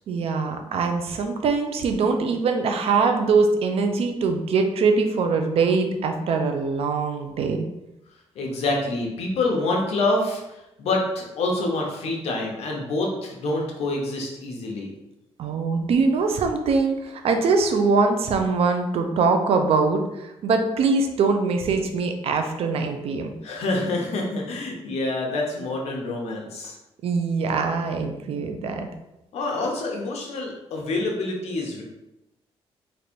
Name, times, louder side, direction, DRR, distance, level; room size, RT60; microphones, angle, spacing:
voice 1, 0.1-7.6 15.4-20.0 20.4-23.3 27.0-28.9, right 4 dB, 65° right, 5 dB, 0.5 m, -22 dB
voice 2, 8.3-14.9 23.4-26.8 29.3-31.8, left 2 dB, 80° left, 0 dB, 0.9 m, -27 dB
3.2 x 2.5 x 4.3 m, 0.92 s
cardioid pair, 125°, 11 cm